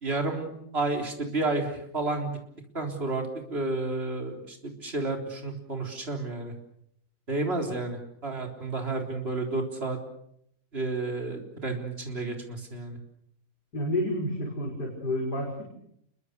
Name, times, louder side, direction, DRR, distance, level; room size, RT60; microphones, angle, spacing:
voice 1, 0.0-2.3 2.7-3.2 3.5-4.6 4.8-6.5 7.3-10.0 10.7-13.0, right 2 dB, 35° right, 3 dB, 4.2 m, -31 dB
voice 2, 13.7-15.6, left 1 dB, 85° left, -2 dB, 6.3 m, -30 dB
28.0 x 22.5 x 6.7 m, 0.72 s
omnidirectional pair, 1.7 m